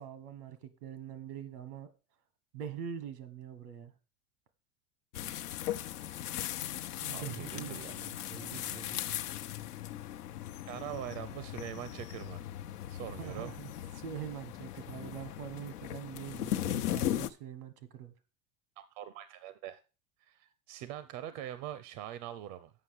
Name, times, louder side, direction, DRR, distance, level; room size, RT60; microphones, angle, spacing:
voice 1, 0.0-1.9 2.5-3.9 7.0-9.0 13.1-13.7 13.9-18.1, right 9 dB, 80° right, 1.5 m, -44 dB
sound 1, 5.1-17.3, left 12 dB, 90° left, 0.8 m, -38 dB
voice 2, 7.1-7.9 10.7-12.5 12.9-13.5 18.8-19.8 20.2-22.7, right 11 dB, 65° right, 0.8 m, -43 dB
7.6 x 5.4 x 6.5 m
hypercardioid pair, 100°, 45 cm